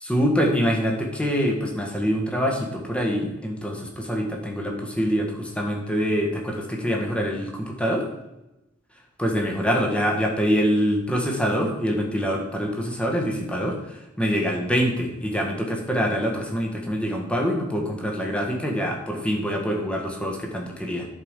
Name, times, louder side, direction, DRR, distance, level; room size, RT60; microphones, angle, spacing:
voice 1, 0.0-8.1 9.2-13.8 14.2-21.1, equal, 5° left, 1 dB, 1.5 m, -25 dB
11.0 x 4.8 x 5.2 m, 0.94 s
head